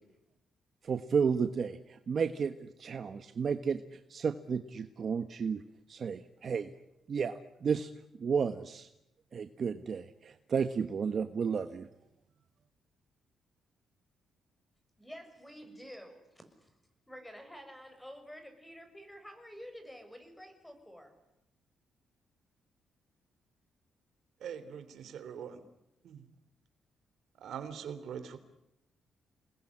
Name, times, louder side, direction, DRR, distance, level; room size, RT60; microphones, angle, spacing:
voice 1, 0.8-5.6 5.9-6.7 7.1-7.9 8.2-8.9 9.3-11.9, right 6 dB, 45° right, 9 dB, 1.3 m, -32 dB
voice 2, 15.0-16.7 17.1-21.1, equal, 5° left, 8 dB, 6.2 m, -49 dB
voice 3, 24.4-25.6 26.0-26.2 27.4-28.4, right 8 dB, 70° right, 10 dB, 3.2 m, -42 dB
28.5 x 20.5 x 10.0 m, 0.87 s
cardioid pair, 115°, 0 cm